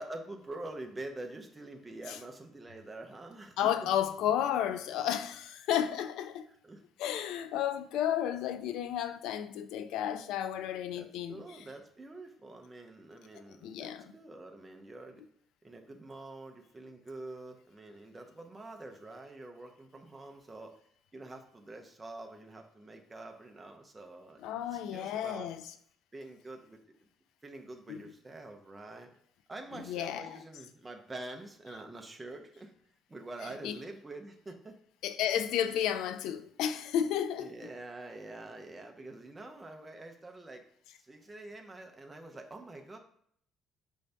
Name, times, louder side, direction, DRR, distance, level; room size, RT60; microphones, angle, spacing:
voice 1, 0.0-3.6 6.5-6.8 10.9-15.2 15.6-20.8 21.1-24.4 24.7-25.5 26.1-26.8 27.4-29.1 29.5-32.7 33.1-34.8 37.4-40.6 41.0-43.0, right 2 dB, 15° right, 0.6 m, -46 dB
voice 2, 3.6-6.5 7.0-11.4 13.6-14.1 24.4-25.6 27.9-28.1 29.9-30.3 33.6-33.8 35.0-37.5, left 10 dB, 80° left, 0.3 m, -32 dB
5.2 x 2.6 x 3.4 m
cardioid pair, 145°, 0 cm